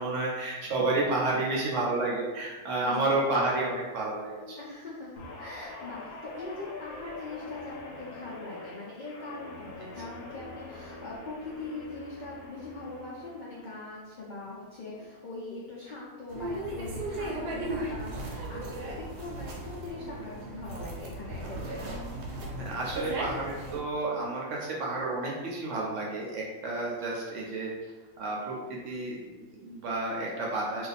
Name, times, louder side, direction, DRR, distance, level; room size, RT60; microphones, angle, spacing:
voice 1, 0.0-4.6 22.6-27.7 28.2-28.5 28.8-30.9, right 2 dB, 65° right, -3 dB, 0.8 m, -30 dB
voice 2, 2.8-3.1 4.6-21.8, left 2 dB, 80° left, -7 dB, 0.4 m, -41 dB
Guitar, 5.2-13.7 14.1-14.5, left 2 dB, 65° left, 1.0 m, -45 dB
sound 1, 16.3-23.8, right 1 dB, 90° right, 1.2 m, -36 dB
2.5 x 2.4 x 4.0 m, 1.3 s
omnidirectional pair, 1.6 m